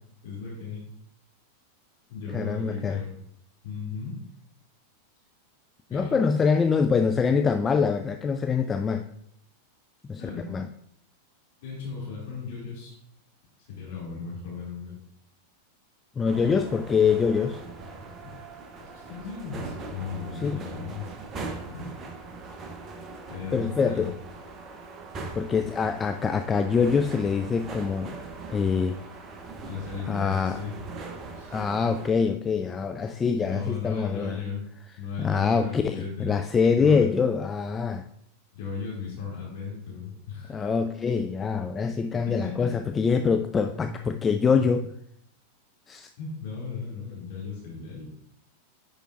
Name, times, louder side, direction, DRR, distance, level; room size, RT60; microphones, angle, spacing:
voice 1, 0.2-0.8 2.1-3.1 3.6-4.2 5.9-6.6 10.2-10.6 11.6-13.0 13.6-14.9 18.9-21.1 21.6-21.9 23.3-24.1 29.6-30.8 31.3-31.6 33.4-34.6 35.0-36.3 36.7-37.1 38.5-40.8 42.3-42.7 46.2-48.0, left 5 dB, 50° left, -6 dB, 2.3 m, -36 dB
voice 2, 2.3-3.0 5.9-9.0 10.1-10.2 10.5-10.7 16.2-17.6 20.4-20.6 23.5-24.1 25.4-28.1 28.5-29.0 30.1-30.6 31.5-34.4 35.2-38.1 40.5-44.9 45.9-46.1, left 5 dB, 20° left, 7 dB, 0.3 m, -24 dB
sound 1, 16.3-32.1, right 3 dB, 25° right, 0.9 m, -41 dB
9.9 x 5.0 x 2.5 m, 0.71 s
figure-of-eight pair, 90°, 0 cm